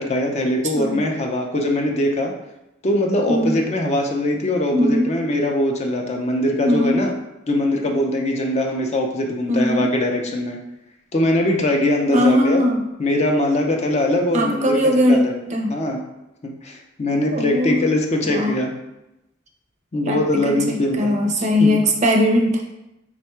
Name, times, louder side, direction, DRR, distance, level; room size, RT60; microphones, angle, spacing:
voice 1, 0.0-2.3 2.8-7.1 7.5-10.6 11.1-12.6 13.0-15.3 15.7-16.0 16.6-18.7 19.9-21.8, left 1 dB, 35° left, 2 dB, 0.4 m, -21 dB
voice 2, 4.7-5.1 6.6-7.0 9.5-9.9 12.1-12.8 14.3-15.2 15.5-15.7 17.3-17.7 18.2-18.5 20.0-22.7, left 1 dB, 35° right, 2 dB, 0.5 m, -19 dB
3.5 x 2.2 x 4.3 m, 0.91 s
head